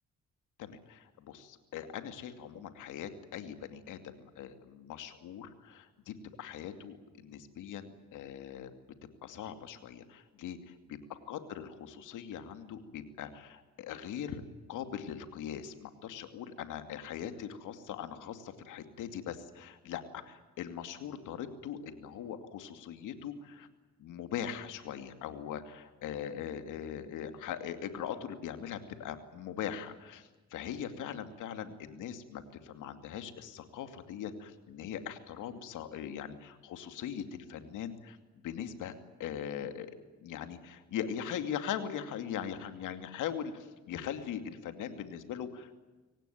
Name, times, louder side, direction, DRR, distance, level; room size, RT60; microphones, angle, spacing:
voice 1, 0.6-8.7 9.2-10.6 11.3-14.4 14.7-23.7 24.0-38.2 38.4-38.9 39.2-45.7, left 9 dB, 85° left, 9 dB, 2.6 m, -41 dB
24.5 x 18.5 x 9.3 m, 1.2 s
cardioid pair, 90°, 30 cm